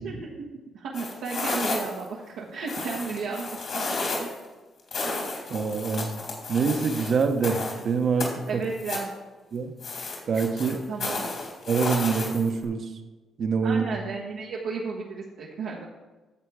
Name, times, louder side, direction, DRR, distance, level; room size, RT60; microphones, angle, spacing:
voice 1, 0.0-4.4 8.5-9.1 10.9-11.3 13.6-15.9, right 4 dB, 80° right, -3 dB, 1.1 m, -34 dB
sound 1, 0.9-2.1 2.7-4.4 4.9-7.8 8.2-9.1 9.8-12.6, left 3 dB, 60° left, 2.7 m, -32 dB
voice 2, 5.5-6.1 6.5-8.6 9.5-9.7 10.3-10.8 11.7-12.9 13.4-13.9, right 5 dB, 55° right, 7 dB, 1.0 m, -25 dB
10.0 x 6.9 x 4.8 m, 1.2 s
cardioid pair, 90°, 0 cm